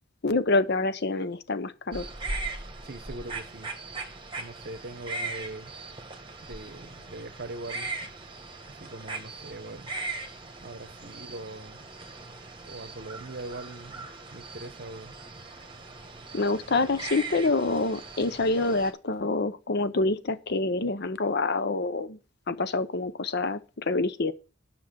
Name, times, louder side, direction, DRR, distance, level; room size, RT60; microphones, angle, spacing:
voice 1, 0.2-2.0 16.3-22.2 22.5-24.3, left 3 dB, 50° left, 0.7 m, -27 dB
sound 1, 1.9-18.9, right 3 dB, 20° right, 1.3 m, -39 dB
voice 2, 2.8-3.7 4.4-5.7 6.4-7.9 8.7-9.9 10.6-11.8 12.7-15.1, right 2 dB, 45° right, 0.9 m, -41 dB
9.8 x 6.0 x 6.2 m
head